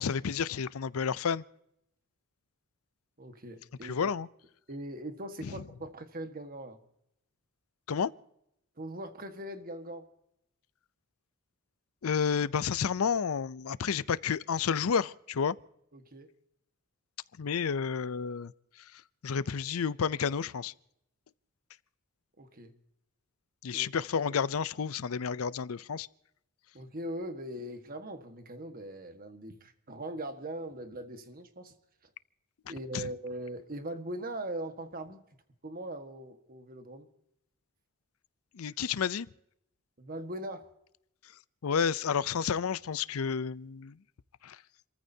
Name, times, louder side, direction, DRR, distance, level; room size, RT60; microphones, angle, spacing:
voice 1, 0.0-1.4 3.8-4.3 5.4-5.5 7.9-8.1 12.0-15.6 17.4-18.5 18.9-20.7 23.6-26.1 32.9-33.1 38.5-39.3 41.6-44.0 44.4-44.6, left 6 dB, 80° left, 0.5 m, -30 dB
voice 2, 3.2-4.1 4.7-6.8 8.8-10.1 15.9-16.3 22.4-22.7 23.7-23.9 26.7-31.7 32.7-35.2 35.6-37.1 40.0-40.7, right 1 dB, 45° right, 1.6 m, -40 dB
30.0 x 14.5 x 2.8 m
head